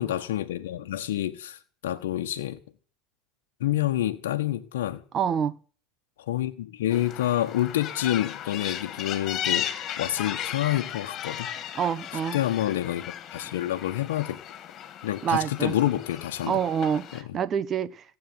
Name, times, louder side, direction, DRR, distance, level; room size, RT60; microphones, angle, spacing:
voice 1, 0.0-2.6 3.6-5.0 6.3-9.7 10.0-11.5 12.3-14.4 15.0-16.6 17.1-17.2, left 13 dB, 80° left, 1.2 m, -28 dB
voice 2, 5.1-5.6 11.7-12.4 15.2-15.8 16.4-18.2, right 8 dB, 40° right, 1.2 m, -27 dB
sound 1, 6.9-17.2, left 10 dB, 45° left, 2.7 m, -36 dB
15.5 x 8.3 x 9.7 m
hypercardioid pair, 90°, 0 cm